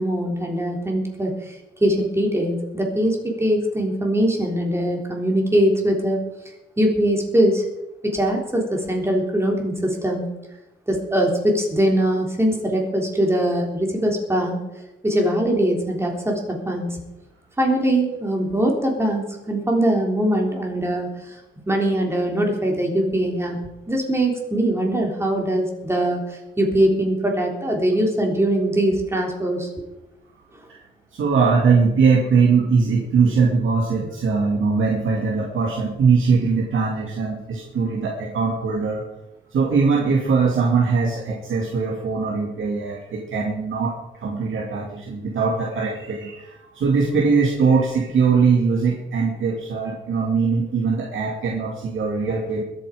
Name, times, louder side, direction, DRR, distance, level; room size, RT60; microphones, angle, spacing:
voice 1, 0.0-6.2 6.8-7.6 8.0-10.3 10.9-14.6 15.0-17.0 17.6-21.4 21.7-23.6 23.9-29.8, right 1 dB, 10° right, 0 dB, 3.5 m, -22 dB
voice 2, 31.1-39.0 39.5-52.6, right 5 dB, 75° right, -2 dB, 2.3 m, -21 dB
21.5 x 8.7 x 5.0 m, 0.97 s
wide cardioid pair, 125°, 21 cm